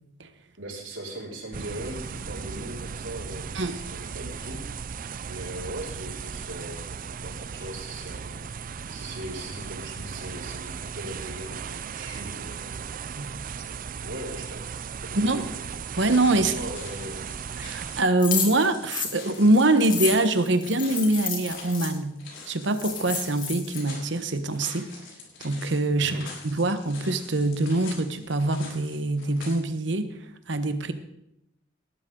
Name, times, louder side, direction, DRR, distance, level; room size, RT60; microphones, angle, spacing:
voice 1, 0.6-4.9 5.3-8.4 8.9-12.7 13.5-13.6 14.0-15.5 16.3-17.3 25.9-26.2, right 1 dB, 80° right, -3 dB, 5.0 m, -39 dB
sound 1, 1.5-18.0, right 6 dB, 45° right, 0.5 m, -37 dB
sound 2, 15.6-29.6, left 4 dB, 75° left, 5.2 m, -45 dB
voice 2, 16.0-16.5 17.6-22.2 22.5-25.0 25.4-26.2 26.4-30.1 30.5-30.9, right 2 dB, 65° right, 10 dB, 1.2 m, -24 dB
sound 3, 18.2-21.9 22.4-22.5 22.7-23.8, left 7 dB, 45° left, 2.8 m, -31 dB
19.0 x 12.5 x 3.9 m, 0.82 s
head